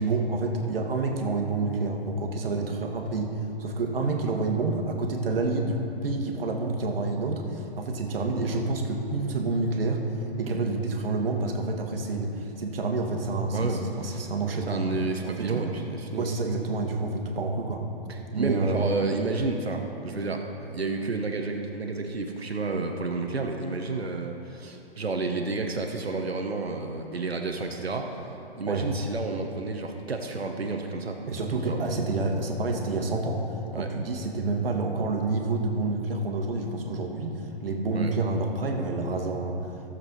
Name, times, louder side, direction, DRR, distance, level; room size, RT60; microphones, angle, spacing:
voice 1, 0.0-10.0 10.4-14.8 15.2-15.6 16.2-17.8 18.3-19.1 28.6-28.9 31.3-33.5 33.7-39.7, right 3 dB, 70° right, 2 dB, 1.5 m, -28 dB
voice 2, 13.5-14.2 14.7-16.3 18.1-28.2 28.6-31.2 31.5-32.1 33.7-33.9 37.9-38.2, right 3 dB, 90° right, 3 dB, 1.0 m, -31 dB
14.0 x 7.2 x 4.0 m, 2.9 s
figure-of-eight pair, 125°, 30 cm